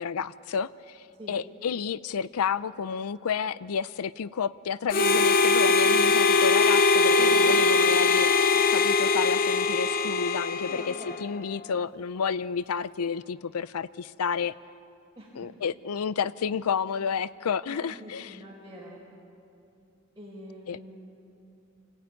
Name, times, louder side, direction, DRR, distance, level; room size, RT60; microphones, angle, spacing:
voice 1, 0.0-8.3 8.7-10.9 11.2-14.5 15.4-18.4 20.7-20.8, left 6 dB, 90° left, 17 dB, 0.5 m, -30 dB
Harmonica, 4.9-11.3, left 4 dB, 40° left, 0.7 m, -22 dB
voice 2, 5.7-6.1 7.1-8.0 10.6-11.6 15.2-15.3 17.7-19.1 20.2-21.2, right 1 dB, 15° right, -6 dB, 4.3 m, -44 dB
28.0 x 16.5 x 9.5 m, 2.7 s
head